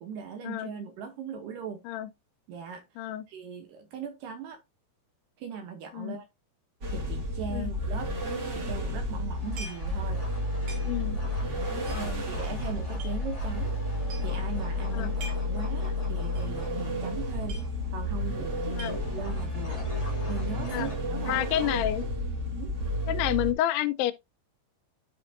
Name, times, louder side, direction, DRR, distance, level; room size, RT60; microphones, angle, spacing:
voice 1, 0.0-1.8 2.5-4.6 5.4-6.3 6.9-8.1 8.5-10.2 12.0-13.7 14.2-15.2 15.5-17.6 17.9-19.9 20.3-21.8 22.6-22.7, right 7 dB, 75° right, 2.1 m, -39 dB
sound 1, 6.8-23.5, left 1 dB, 45° right, 1.5 m, -31 dB
sound 2, 9.0-21.0, left 1 dB, 45° left, 0.4 m, -44 dB
sound 3, 9.5-10.0 10.3-10.4 10.7-11.2 11.8-13.1 13.7-13.8 14.0-14.4 15.0-15.6 15.9-16.0 16.4-16.6 16.8-16.9 17.2-18.1 18.4-19.3, right 3 dB, 60° right, 3.4 m, -45 dB
voice 2, 10.8-11.2 11.9-12.2 14.9-15.1 18.8-19.0 20.7-20.9 21.3-22.0 23.1-24.1, left 13 dB, 85° left, 2.6 m, -29 dB
12.0 x 4.4 x 2.5 m
omnidirectional pair, 4.6 m